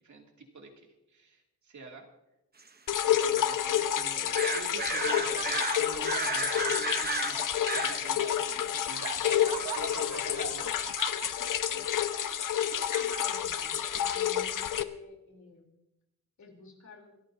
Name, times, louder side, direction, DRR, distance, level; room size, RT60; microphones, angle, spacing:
voice 1, 0.0-2.1 3.0-7.4 7.7-11.1 11.4-12.1, right 3 dB, 65° right, 1 dB, 2.7 m, -49 dB
sound 1, 2.6-2.7 3.0-3.1 3.5-3.6 4.3-8.2 9.3-9.9, right 4 dB, 30° right, 1.0 m, -34 dB
sound 2, 2.9-14.8, left 10 dB, 80° left, 0.8 m, -29 dB
Laughter, 4.1-14.6, right 6 dB, 85° right, 1.4 m, -43 dB
voice 2, 13.2-15.7 16.4-17.2, left 4 dB, 65° left, 1 dB, 3.7 m, -50 dB
27.0 x 14.0 x 2.8 m, 0.92 s
wide cardioid pair, 150°, 32 cm